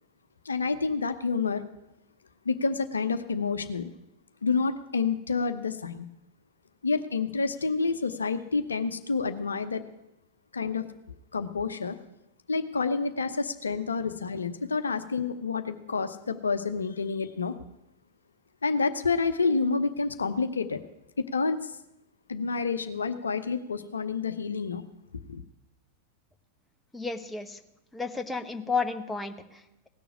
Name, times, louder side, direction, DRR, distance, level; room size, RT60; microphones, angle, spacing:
voice 1, 0.4-1.6 2.4-3.9 4.4-6.1 6.8-9.8 10.5-10.9 11.3-12.0 12.5-17.5 18.6-20.8 21.3-21.8 22.3-24.8 25.3-25.4, left 4 dB, 75° left, 9 dB, 0.8 m, -28 dB
voice 2, 26.9-27.6 27.9-29.9, left 4 dB, 10° left, 7 dB, 1.1 m, -32 dB
17.5 x 7.0 x 9.8 m, 0.90 s
figure-of-eight pair, 90°, 0 cm